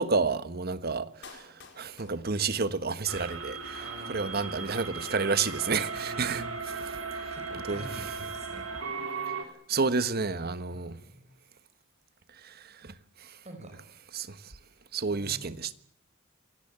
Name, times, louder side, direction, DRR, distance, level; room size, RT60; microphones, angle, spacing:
voice 1, 0.0-3.8 4.1-6.5 7.7-8.0 9.7-11.0 12.4-13.4 14.1-14.5 14.9-15.7, right 4 dB, 50° right, 1.3 m, -30 dB
Clapping, 1.2-3.2 3.5-3.6, left 5 dB, 60° left, 4.6 m, -52 dB
sound 1, 3.1-9.4, right 4 dB, 75° right, 3.7 m, -37 dB
voice 2, 3.8-4.3 5.9-6.6 6.9-8.7 9.8-10.0 10.7-11.3 13.4-13.8 15.1-15.5, right 1 dB, 35° right, 6.0 m, -48 dB
27.0 x 17.5 x 8.8 m
head